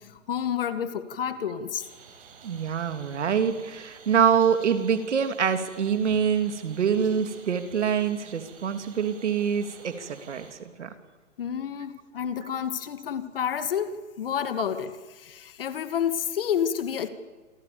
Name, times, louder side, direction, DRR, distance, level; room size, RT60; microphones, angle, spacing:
voice 1, 0.0-1.8 11.4-17.1, left 8 dB, 45° left, 2.4 m, -30 dB
sound 1, 1.8-10.5, right 6 dB, 45° right, 6.4 m, -51 dB
voice 2, 2.4-10.9, right 7 dB, 65° right, 3.4 m, -25 dB
28.5 x 28.5 x 7.2 m
hypercardioid pair, 165°, 38 cm